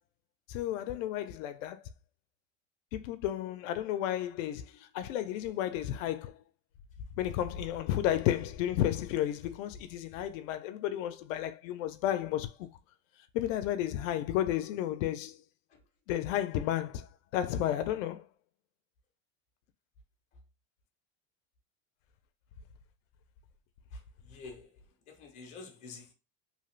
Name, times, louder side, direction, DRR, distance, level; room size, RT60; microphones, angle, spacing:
voice 1, 0.5-1.8 2.9-6.4 7.2-12.7 13.3-15.4 16.1-18.3, left 12 dB, 70° left, 0.5 m, -32 dB
voice 2, 23.9-26.1, left 3 dB, 20° left, 0.5 m, -49 dB
2.8 x 2.4 x 3.1 m
cardioid pair, 180°, 40 cm